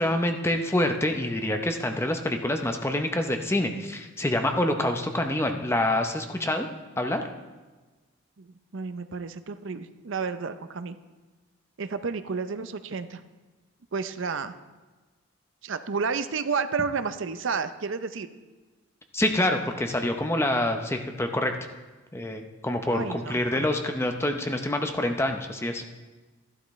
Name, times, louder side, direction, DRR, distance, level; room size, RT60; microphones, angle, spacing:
voice 1, 0.0-6.7 7.0-7.2 19.1-21.5 22.1-25.8, left 1 dB, 10° left, 5 dB, 0.7 m, -26 dB
voice 2, 8.4-11.0 11.8-13.2 13.9-14.5 15.6-18.3 22.9-23.7, right 5 dB, 60° right, 11 dB, 0.6 m, -31 dB
13.0 x 11.5 x 3.2 m, 1.3 s
head